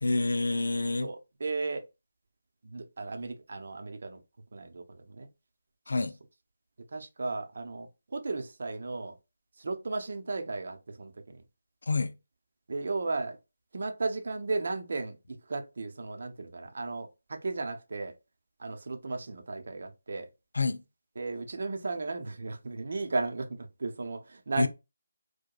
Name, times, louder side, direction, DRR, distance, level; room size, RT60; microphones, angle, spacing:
voice 1, 0.0-1.1 5.9-6.1 11.9-12.1 20.5-20.8 24.6-24.7, left 3 dB, 70° left, 0.5 m, -27 dB
voice 2, 1.0-1.9 2.6-4.2 4.5-5.3 6.9-9.2 9.6-11.4 12.7-13.4 13.7-18.1 18.6-20.3 21.2-24.7, right 3 dB, 60° right, 0.7 m, -35 dB
4.7 x 2.2 x 2.3 m
figure-of-eight pair, 155°, 0 cm